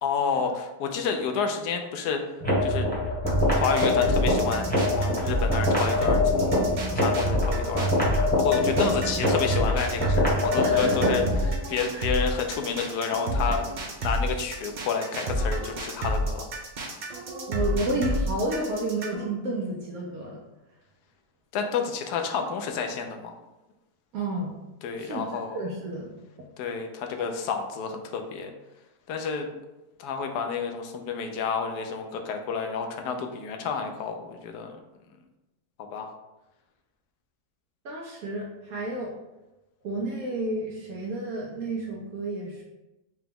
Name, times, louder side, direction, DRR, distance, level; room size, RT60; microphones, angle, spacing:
voice 1, 0.0-2.2 2.6-2.9 3.6-7.9 8.4-11.2 11.7-13.6 14.0-16.5 21.5-23.3 24.8-25.6 26.6-28.5 29.1-29.5 30.0-34.7 35.9-36.1, left 5 dB, 85° left, 4 dB, 1.1 m, -30 dB
sound 1, 2.4-11.4, left 1 dB, 5° left, 0.9 m, -24 dB
sound 2, 3.3-19.3, equal, 90° right, 0.4 m, -29 dB
voice 2, 10.6-11.1 11.4-11.5 11.9-12.0 17.5-20.4 24.1-24.5 25.0-25.3 25.5-26.1 37.8-39.2 39.8-42.6, right 2 dB, 70° right, -2 dB, 1.0 m, -31 dB
4.9 x 2.2 x 3.5 m, 1.0 s
omnidirectional pair, 1.7 m